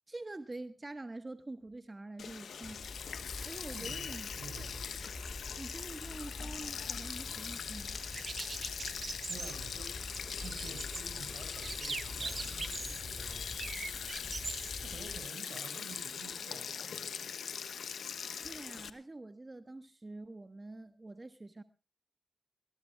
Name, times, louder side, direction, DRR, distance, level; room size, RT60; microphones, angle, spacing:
voice 1, 0.1-2.9 3.4-4.7 5.6-8.0 18.3-21.6, right 2 dB, 35° right, 1.3 m, -46 dB
Sink (filling or washing), 2.2-18.9, left 7 dB, 80° left, 1.1 m, -41 dB
sound 1, 2.6-15.2, left 2 dB, 45° left, 5.7 m, -47 dB
voice 2, 3.7-4.1 4.3-4.9 9.3-9.9 10.3-13.6 14.8-16.7, right 4 dB, 85° right, 6.0 m, -50 dB
sound 2, 7.6-14.7, right 4 dB, 55° right, 0.7 m, -43 dB
22.0 x 20.0 x 2.4 m
supercardioid pair, 40°, 0 cm